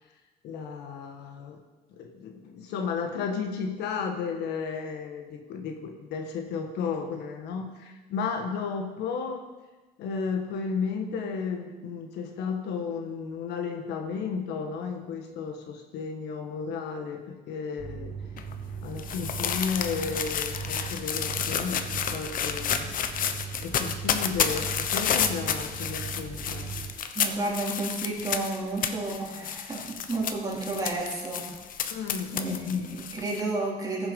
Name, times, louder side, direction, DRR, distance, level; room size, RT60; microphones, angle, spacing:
voice 1, 0.4-1.6 1.9-9.4 10.0-18.1 18.8-22.9 23.6-26.7 31.9-32.9, left 5 dB, 85° left, 3 dB, 1.6 m, -33 dB
sound 1, 17.8-26.9, right 6 dB, 45° right, 4.7 m, -39 dB
sound 2, 18.4-33.4, left 8 dB, 55° left, 0.9 m, -31 dB
voice 2, 27.1-31.5 32.3-34.1, right 2 dB, 20° right, -4 dB, 3.7 m, -32 dB
15.5 x 7.0 x 5.4 m, 1.2 s
cardioid pair, 110°, 17 cm